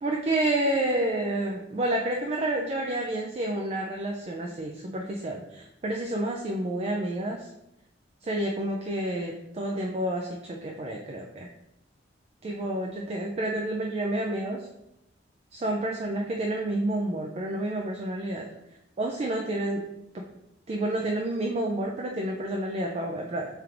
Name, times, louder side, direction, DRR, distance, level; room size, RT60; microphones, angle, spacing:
voice 1, 0.0-7.5 8.2-11.5 12.4-14.7 15.5-18.5 19.0-19.9 20.1-20.2 20.7-23.6, right 1 dB, 35° right, 0 dB, 0.3 m, -29 dB
3.2 x 2.5 x 4.4 m, 0.86 s
head